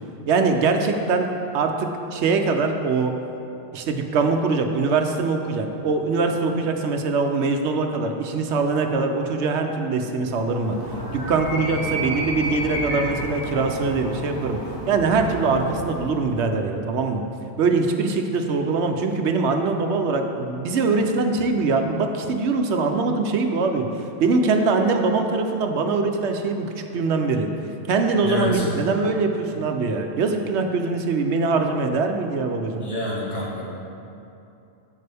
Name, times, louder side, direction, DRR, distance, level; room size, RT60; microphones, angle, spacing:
voice 1, 0.3-1.3 1.5-3.1 3.7-10.8 11.1-14.6 14.9-17.2 17.6-23.9 24.2-27.5 27.9-32.9, right 4 dB, 75° right, 4 dB, 1.0 m, -22 dB
Animal, 10.5-16.4, right 1 dB, 30° left, 2.1 m, -31 dB
voice 2, 28.2-28.7 32.8-33.6, left 1 dB, 55° left, -6 dB, 2.0 m, -27 dB
11.0 x 7.6 x 3.4 m, 2.7 s
omnidirectional pair, 1.2 m